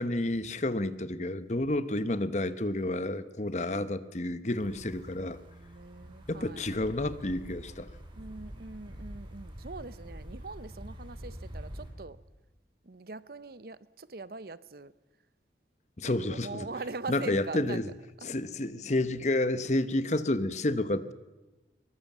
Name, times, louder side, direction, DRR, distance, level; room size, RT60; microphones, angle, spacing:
voice 1, 0.0-5.4 6.3-7.9 16.0-16.7 17.1-17.9 18.2-21.1, left 1 dB, 40° left, 1.0 m, -30 dB
sound 1, 4.5-11.9, equal, 25° right, 5.1 m, -46 dB
voice 2, 4.8-6.7 8.1-12.2 12.8-14.9 16.0-17.8 18.2-18.4, right 3 dB, 55° right, 0.7 m, -43 dB
22.5 x 20.5 x 7.4 m
head